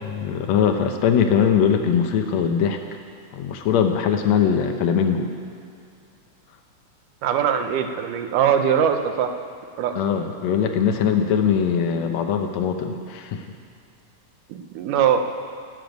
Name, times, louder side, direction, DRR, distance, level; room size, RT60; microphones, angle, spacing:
voice 1, 0.1-2.8 3.3-5.3 10.0-13.4, left 7 dB, 70° left, 5 dB, 2.0 m, -21 dB
voice 2, 7.2-9.3 9.8-10.0 14.5-15.3, right 8 dB, 90° right, 6 dB, 2.5 m, -21 dB
17.0 x 6.9 x 9.3 m, 2.3 s
omnidirectional pair, 3.6 m